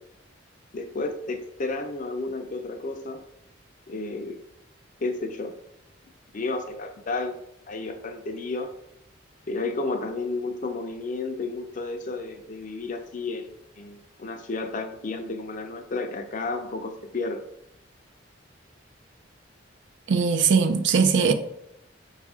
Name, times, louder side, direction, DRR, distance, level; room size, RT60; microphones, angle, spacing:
voice 1, 0.7-3.2 3.9-4.4 5.0-5.5 6.3-7.3 7.7-8.7 9.5-17.4, left 3 dB, 45° left, 0.5 m, -32 dB
voice 2, 20.1-21.3, right 5 dB, 65° right, 0.4 m, -20 dB
5.4 x 2.4 x 3.6 m
head